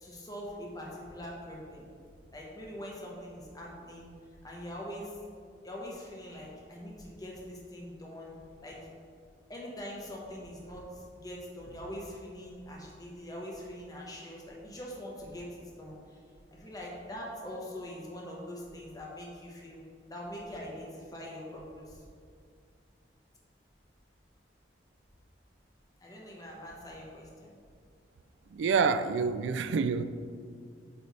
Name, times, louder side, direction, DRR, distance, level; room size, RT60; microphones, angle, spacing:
voice 1, 0.0-1.9 2.3-4.1 4.4-5.1 5.6-8.3 8.6-8.8 9.5-15.9 16.5-19.8 20.1-22.0 26.0-27.3, equal, 20° left, 1.0 m, -43 dB
voice 2, 28.5-30.0, right 5 dB, 85° right, 0.3 m, -27 dB
8.2 x 3.3 x 4.1 m
head